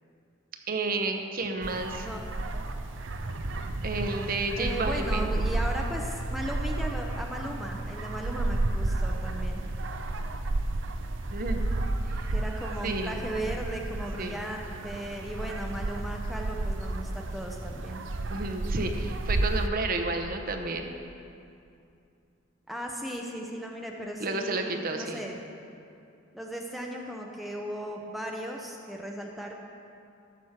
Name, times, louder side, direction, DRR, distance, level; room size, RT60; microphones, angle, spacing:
voice 1, 0.7-2.1 3.8-5.3 11.3-11.7 12.2-12.3 12.8-13.2 14.2-14.3 18.3-20.9 24.2-25.2, right 3 dB, 50° right, 5 dB, 0.9 m, -31 dB
sound 1, 1.6-19.7, right 2 dB, 70° right, 0.7 m, -32 dB
voice 2, 4.6-9.6 12.3-18.0 22.7-25.4 26.3-29.5, equal, ahead, 0 dB, 0.7 m, -36 dB
14.5 x 6.2 x 5.9 m, 2.6 s
head